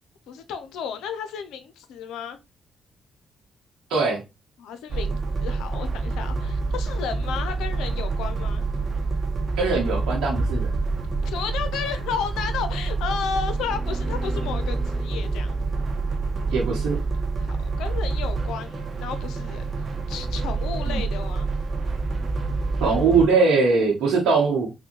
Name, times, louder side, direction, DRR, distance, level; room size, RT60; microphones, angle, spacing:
voice 1, 0.3-2.4 4.6-8.7 11.2-15.6 17.4-19.6 20.1-21.5, left 7 dB, 80° left, 0.5 m, -33 dB
voice 2, 3.9-4.2 9.6-10.7 16.5-17.0 20.9-21.0 22.8-24.7, right 4 dB, 75° right, 0.8 m, -21 dB
sound 1, 4.9-23.3, right 3 dB, 45° right, 0.8 m, -27 dB
3.6 x 2.1 x 2.9 m
hypercardioid pair, 50°, 0 cm